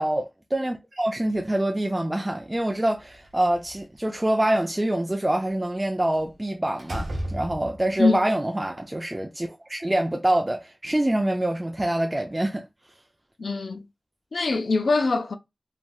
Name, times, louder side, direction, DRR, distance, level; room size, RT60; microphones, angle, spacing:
voice 1, 0.0-12.6, right 1 dB, 25° right, 0.4 m, -25 dB
Slam, 2.9-4.0 6.1-6.3 6.8-8.0, right 1 dB, 85° right, 0.8 m, -34 dB
voice 2, 13.4-13.8 14.3-15.3, left 3 dB, 80° left, 0.4 m, -23 dB
3.1 x 2.6 x 2.2 m
cardioid pair, 45°, 0 cm